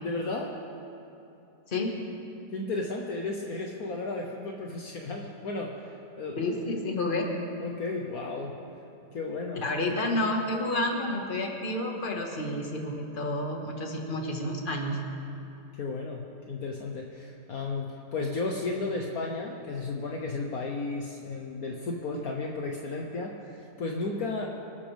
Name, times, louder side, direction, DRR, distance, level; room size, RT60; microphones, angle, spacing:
voice 1, 0.0-0.5 2.5-6.8 7.6-8.6 9.1-9.6 15.7-24.5, left 3 dB, 60° left, 0 dB, 1.4 m, -34 dB
voice 2, 6.4-7.3 9.6-15.0, left 1 dB, 30° left, 1 dB, 1.7 m, -30 dB
25.5 x 12.5 x 3.5 m, 2.8 s
omnidirectional pair, 1.9 m